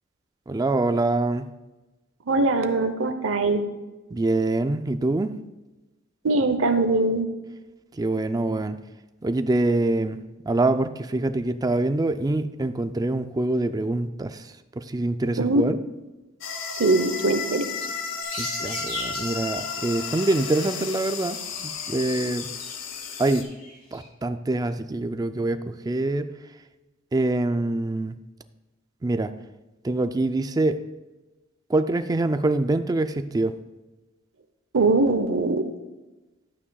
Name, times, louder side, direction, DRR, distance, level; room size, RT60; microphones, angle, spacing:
voice 1, 0.5-1.5 4.1-5.3 8.0-8.8 9.2-10.2 10.5-15.8 18.4-21.4 21.6-22.5 23.2-23.5 23.9-25.6 25.9-26.3 27.1-28.1 29.0-29.3 29.8-30.8 31.7-33.5, right 2 dB, 20° right, 10 dB, 0.4 m, -25 dB
voice 2, 2.3-3.6 6.2-7.3 15.4-15.6 16.8-17.6 34.7-35.6, right 2 dB, 70° right, 8 dB, 0.8 m, -21 dB
sound 1, 16.4-23.4, left 6 dB, 65° left, 0.9 m, -33 dB
sound 2, 18.2-19.7 20.1-20.4 21.0-24.1, left 1 dB, 45° left, 2.8 m, -38 dB
12.0 x 8.5 x 2.3 m, 1.1 s
head